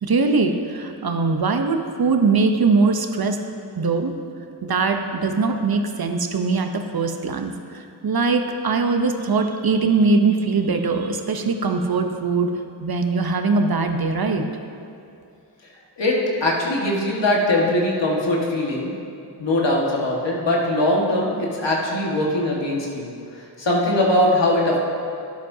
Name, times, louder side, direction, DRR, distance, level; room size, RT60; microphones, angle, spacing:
voice 1, 0.0-3.4 3.8-4.1 4.6-12.5 12.8-14.5, right 4 dB, 60° right, 5 dB, 0.8 m, -21 dB
voice 2, 16.0-18.9 19.4-23.1 23.6-24.8, left 1 dB, 85° left, -3 dB, 1.7 m, -21 dB
11.5 x 10.5 x 2.7 m, 2.5 s
wide cardioid pair, 65°, 42 cm